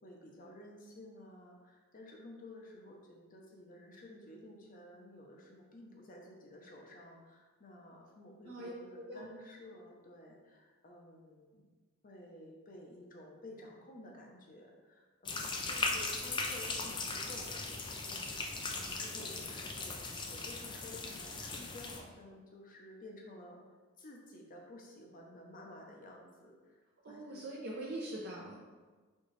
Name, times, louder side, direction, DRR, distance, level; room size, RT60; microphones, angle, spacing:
voice 1, 0.0-11.7 12.0-23.6 24.0-26.8 27.1-27.4, left 1 dB, 40° left, 0 dB, 0.7 m, -53 dB
sound 1, 15.3-22.0, left 3 dB, 20° left, 0.4 m, -38 dB
voice 2, 27.0-28.6, right 1 dB, 50° right, -4 dB, 0.6 m, -42 dB
4.4 x 3.8 x 3.2 m, 1.4 s
head